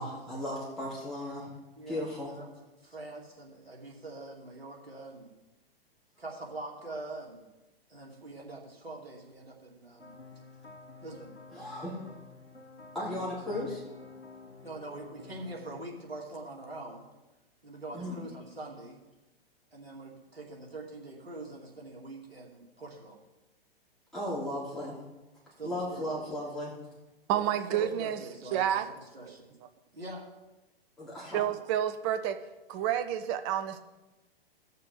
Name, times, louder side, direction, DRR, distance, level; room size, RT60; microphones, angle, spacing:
voice 1, 0.0-1.5 1.9-2.3 11.5-12.0 12.9-13.8 17.9-18.1 24.1-25.0 25.6-26.7 31.0-31.4, left 1 dB, ahead, -9 dB, 3.1 m, -36 dB
voice 2, 1.8-2.5 2.8-5.3 6.2-7.5 7.9-10.2 11.0-11.4 13.0-13.1 13.5-13.7 14.6-17.1 17.6-19.0 19.7-23.2 25.6-26.3 27.3-29.5 29.9-30.3, right 2 dB, 80° right, -1 dB, 2.5 m, -44 dB
sound 1, 10.0-15.8, left 4 dB, 85° left, 1.3 m, -50 dB
voice 3, 27.3-28.2 28.5-28.8 29.3-29.4 31.3-32.4 32.7-33.8, right 10 dB, 25° right, 9 dB, 0.7 m, -29 dB
18.0 x 6.7 x 3.5 m, 1.0 s
figure-of-eight pair, 115°, 30 cm